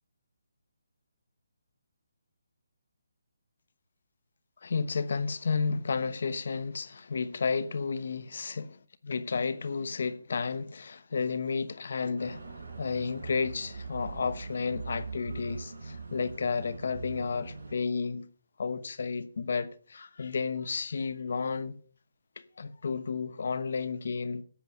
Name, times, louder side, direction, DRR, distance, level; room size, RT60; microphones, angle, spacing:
voice 1, 4.6-8.7 9.1-12.4 12.8-18.3 18.6-21.8 22.4-24.4, left 5 dB, 60° left, 1.1 m, -32 dB
sound 1, 12.2-17.7, right 4 dB, 85° right, 5.2 m, -42 dB
11.5 x 8.3 x 5.5 m
hypercardioid pair, 160°, 0 cm